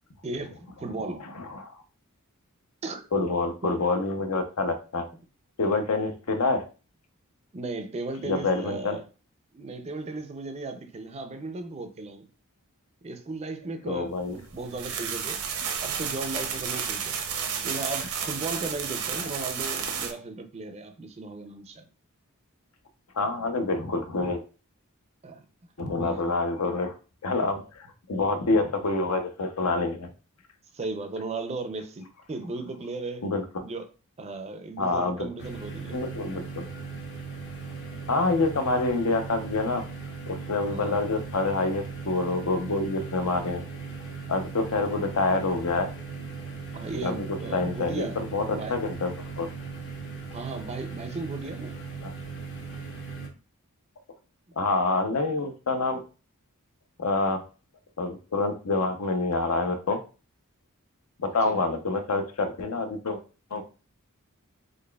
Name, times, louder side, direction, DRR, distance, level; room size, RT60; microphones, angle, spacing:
voice 1, 0.2-1.3 2.8-3.3 7.5-9.0 9.5-12.3 13.0-15.4 15.8-17.2 17.6-21.8 25.2-25.4 26.0-26.3 30.7-33.3 33.6-33.9 34.2-36.0 40.7-41.0 46.7-48.2 48.5-48.8 50.3-51.8 61.4-61.7, right 3 dB, 30° right, 0.4 m, -36 dB
voice 2, 1.2-1.8 3.1-5.1 5.6-6.6 8.2-9.0 13.9-14.4 23.1-24.4 25.8-26.9 27.2-30.1 33.2-33.4 34.8-35.3 35.9-36.6 38.1-39.8 40.3-43.6 44.3-45.9 47.0-47.3 47.5-49.5 52.0-52.1 54.6-56.0 57.0-57.4 58.0-60.0 61.2-63.2 63.5-63.6, left 3 dB, 75° left, 0.7 m, -27 dB
sound 1, 14.3-20.1, right 7 dB, 80° right, 0.6 m, -32 dB
sound 2, 35.4-53.3, right 4 dB, 55° left, 1.0 m, -38 dB
4.0 x 3.3 x 2.2 m
head